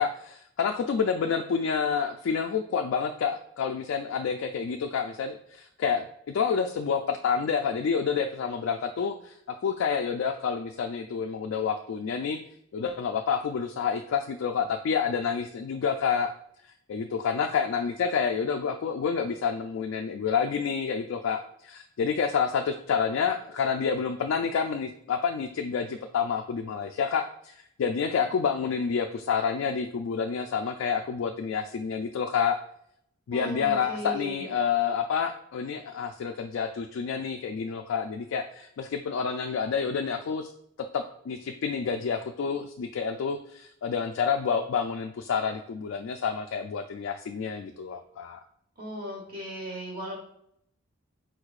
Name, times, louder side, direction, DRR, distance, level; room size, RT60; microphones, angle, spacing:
voice 1, 0.0-12.4 12.7-16.3 16.9-32.6 33.3-40.5 40.9-48.4, left 6 dB, 70° left, 4 dB, 0.3 m, -28 dB
voice 2, 33.3-34.4 48.8-50.1, equal, 45° right, -2 dB, 1.1 m, -37 dB
4.7 x 4.4 x 2.4 m, 0.71 s
head